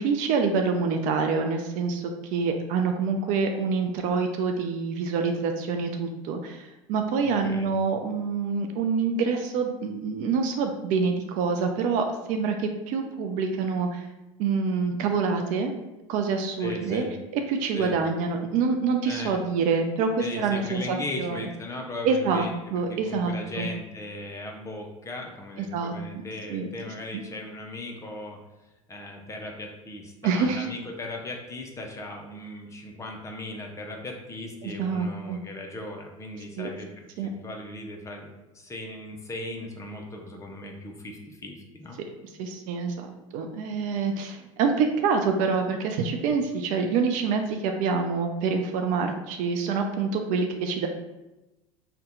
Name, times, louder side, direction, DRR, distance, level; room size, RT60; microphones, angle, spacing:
voice 1, 0.0-14.1 14.4-15.7 16.1-17.0 17.5-20.8 21.2-21.5 22.0-23.7 25.7-25.9 26.5-26.7 27.1-27.2 30.2-30.7 34.6-35.4 36.6-36.7 37.2-37.3 42.4-50.9, right 5 dB, 45° right, 4 dB, 0.4 m, -26 dB
voice 2, 7.2-7.7 16.6-17.1 17.7-17.9 19.1-19.4 20.2-22.5 22.9-28.4 28.9-38.3 38.5-42.0, left 2 dB, 15° left, 1 dB, 0.6 m, -38 dB
2.7 x 2.2 x 3.7 m, 1.0 s
hypercardioid pair, 80°, 18 cm